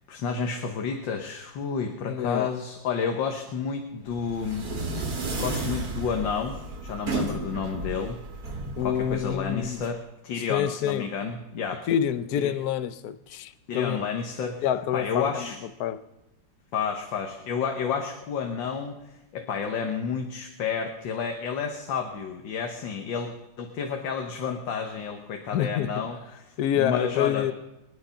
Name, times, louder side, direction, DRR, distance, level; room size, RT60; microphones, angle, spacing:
voice 1, 0.1-4.7 5.0-5.1 5.4-6.6 6.8-8.2 8.8-11.8 12.4-12.5 13.7-14.6 14.9-15.6 16.7-19.0 19.3-23.3 23.6-27.5, left 6 dB, 80° left, 1.9 m, -30 dB
voice 2, 2.0-2.5 8.8-9.8 10.5-11.1 11.9-14.0 14.6-15.5 15.8-16.0 25.5-25.9 26.6-27.5, left 10 dB, 60° left, 1.1 m, -27 dB
sound 1, 4.1-9.9, right 3 dB, 50° right, 2.3 m, -33 dB
22.0 x 9.6 x 5.7 m
omnidirectional pair, 2.0 m